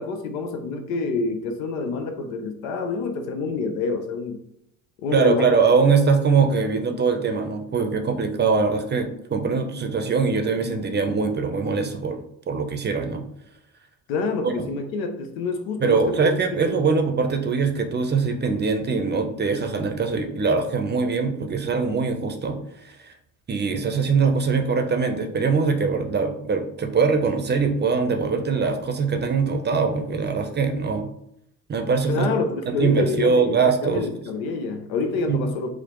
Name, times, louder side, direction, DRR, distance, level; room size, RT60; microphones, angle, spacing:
voice 1, 0.0-4.4 5.0-5.5 14.1-16.3 16.6-16.8 32.1-35.7, left 4 dB, 85° left, 7 dB, 0.6 m, -27 dB
voice 2, 5.1-13.2 14.4-14.5 15.8-22.6 23.0-23.1 23.5-31.1 31.7-32.3 32.7-34.1 35.3-35.4, right 5 dB, 25° right, 6 dB, 0.6 m, -22 dB
4.8 x 2.0 x 3.0 m, 0.77 s
supercardioid pair, 75°, 40 cm